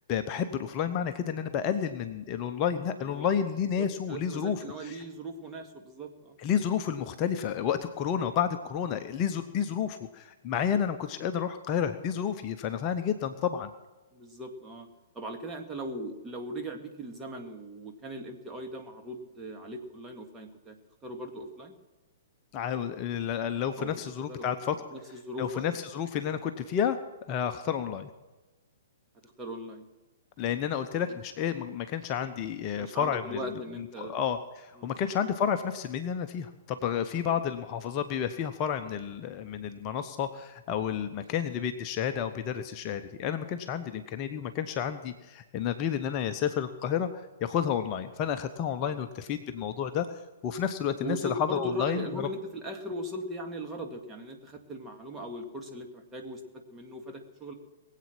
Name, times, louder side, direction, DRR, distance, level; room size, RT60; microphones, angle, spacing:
voice 1, 0.1-5.0 6.4-13.7 22.5-24.8 25.4-27.0 27.3-28.1 30.4-33.4 33.7-52.3, left 8 dB, 35° left, 8 dB, 0.8 m, -31 dB
voice 2, 3.0-3.3 3.8-6.4 14.1-14.9 15.1-20.8 21.0-21.7 23.8-23.9 24.3-24.6 24.9-25.6 27.3-27.5 29.2-29.9 31.1-31.2 32.8-34.2 34.8-34.9 48.9-49.0 51.0-57.5, equal, 15° right, 2 dB, 2.1 m, -39 dB
21.5 x 8.4 x 6.1 m, 1.1 s
figure-of-eight pair, 110°, 0 cm